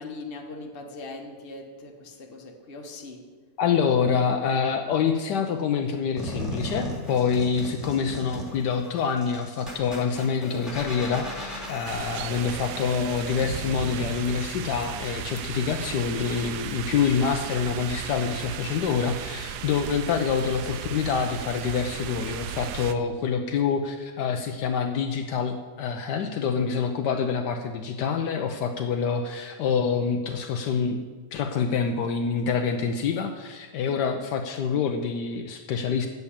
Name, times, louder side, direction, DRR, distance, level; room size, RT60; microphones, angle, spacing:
voice 1, 0.0-3.3, left 3 dB, 35° left, 2 dB, 1.3 m, -40 dB
voice 2, 3.6-31.0 31.3-36.1, left 6 dB, 75° left, 5 dB, 1.3 m, -26 dB
sound 1, 6.2-14.2, equal, ahead, 2.1 m, -37 dB
sound 2, 11.8-22.9, right 9 dB, 75° right, 1.1 m, -36 dB
8.1 x 6.9 x 8.5 m, 1.5 s
omnidirectional pair, 1.9 m